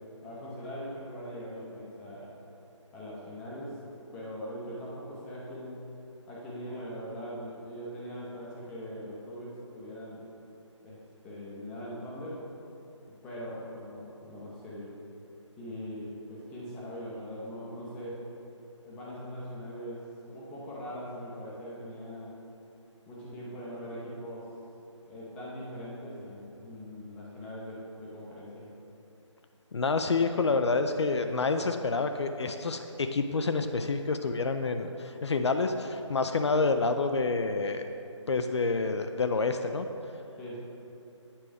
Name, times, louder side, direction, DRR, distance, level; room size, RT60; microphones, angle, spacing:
voice 1, 0.2-2.3 2.9-3.8 4.1-5.8 6.3-10.2 10.8-12.4 13.2-14.9 15.6-18.2 18.9-22.4 23.1-24.5 25.0-28.7 40.4-40.6, equal, 5° left, -6 dB, 0.6 m, -41 dB
voice 2, 29.7-37.8 38.3-39.9, left 3 dB, 60° left, 7 dB, 0.4 m, -28 dB
8.6 x 4.6 x 4.9 m, 2.8 s
figure-of-eight pair, 160°, 16 cm